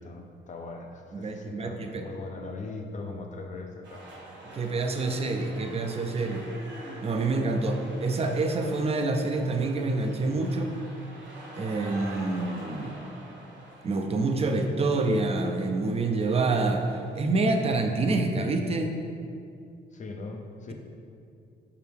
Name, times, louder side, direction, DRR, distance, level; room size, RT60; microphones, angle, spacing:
voice 1, 0.0-4.1 19.9-20.7, left 3 dB, 40° left, 3 dB, 0.7 m, -40 dB
voice 2, 1.1-2.0 4.5-6.5 7.0-10.7 11.5-13.0 13.8-16.9 17.1-19.0, right 3 dB, 30° right, 4 dB, 0.6 m, -27 dB
sound 1, 3.8-17.2, right 2 dB, 65° right, 1.4 m, -46 dB
5.7 x 4.7 x 3.5 m, 2.5 s
cardioid pair, 90°, 20 cm